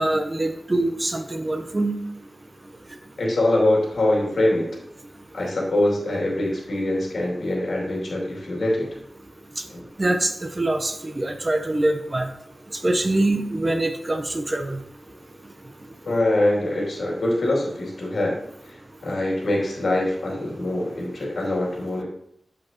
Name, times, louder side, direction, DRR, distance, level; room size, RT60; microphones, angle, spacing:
voice 1, 0.0-1.9 10.0-12.3 12.7-14.8, right 2 dB, 30° right, 6 dB, 0.7 m, -24 dB
voice 2, 3.2-4.7 5.3-8.9 9.7-9.9 16.0-18.4 18.6-22.0, left 1 dB, 75° left, -3 dB, 2.5 m, -23 dB
7.8 x 7.0 x 2.9 m, 0.74 s
wide cardioid pair, 110°, 0 cm